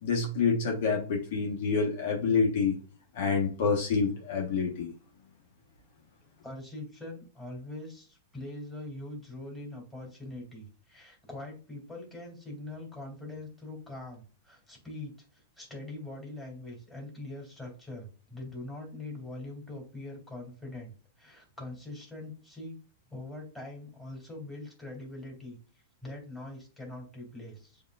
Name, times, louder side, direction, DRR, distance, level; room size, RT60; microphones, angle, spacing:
voice 1, 0.0-2.8 3.1-4.9, left 5 dB, 65° left, 1.4 m, -27 dB
voice 2, 6.4-22.8 23.1-25.6 26.0-27.8, left 2 dB, 5° left, 2.7 m, -43 dB
7.1 x 2.9 x 2.5 m
hypercardioid pair, 120°, 0 cm